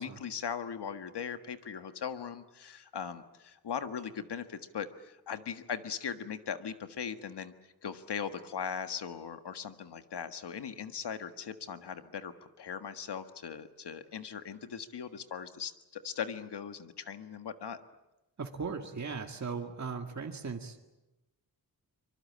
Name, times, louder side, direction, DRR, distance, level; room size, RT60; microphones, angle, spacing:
voice 1, 0.0-7.5 7.8-12.3 12.6-17.8, left 7 dB, 85° left, 9 dB, 1.7 m, -39 dB
voice 2, 18.4-20.9, right 5 dB, 45° right, 4 dB, 2.0 m, -38 dB
25.0 x 24.0 x 8.7 m, 0.99 s
wide cardioid pair, 120°, 39 cm